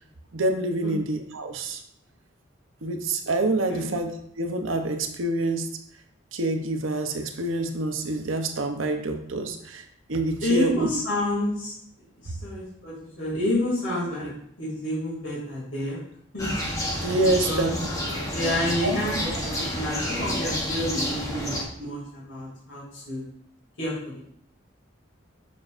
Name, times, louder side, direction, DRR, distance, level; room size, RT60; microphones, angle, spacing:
voice 1, 0.3-1.8 2.8-5.7 6.3-9.8 10.1-10.9 12.3-12.4 17.0-17.9 18.8-18.9, right 2 dB, 85° right, 5 dB, 0.8 m, -27 dB
voice 2, 10.4-11.7 12.2-14.3 14.6-16.0 16.3-16.5 17.2-17.7 18.3-23.2 23.8-24.2, left 1 dB, 75° left, -7 dB, 2.4 m, -29 dB
sound 1, 16.4-21.6, left 1 dB, 15° left, 1.0 m, -29 dB
6.8 x 6.2 x 2.5 m, 0.69 s
head